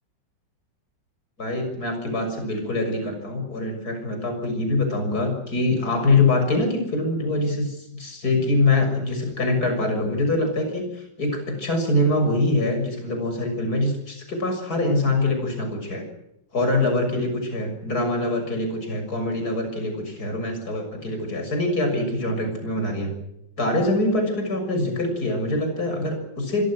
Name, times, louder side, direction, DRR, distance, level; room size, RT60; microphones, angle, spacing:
voice 1, 1.4-16.0 16.5-23.2 23.6-26.6, left 2 dB, 55° left, 5 dB, 7.1 m, -24 dB
26.5 x 23.5 x 6.3 m, 0.85 s
omnidirectional pair, 2.0 m